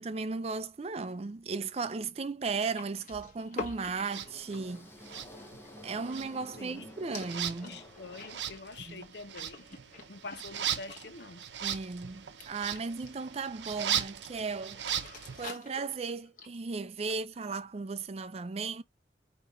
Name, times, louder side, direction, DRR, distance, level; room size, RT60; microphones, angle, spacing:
voice 1, 0.0-4.9 5.8-7.7 8.9-9.0 11.6-14.8 15.4-18.8, right 4 dB, 35° right, 0.4 m, -36 dB
sound 1, 2.4-6.8 7.1-11.2 11.5-11.8 12.4-13.3 14.2-14.4 14.7-16.6, left 4 dB, 45° left, 1.3 m, -47 dB
sound 2, 4.0-9.1, equal, 15° left, 0.9 m, -51 dB
sound 3, 4.0-4.3 5.0-5.8 6.0-15.5, right 10 dB, 80° right, 0.6 m, -38 dB
voice 2, 6.6-6.9 7.6-9.7 10.1-11.5, left 3 dB, 70° left, 0.7 m, -46 dB
5.3 x 2.9 x 3.0 m
head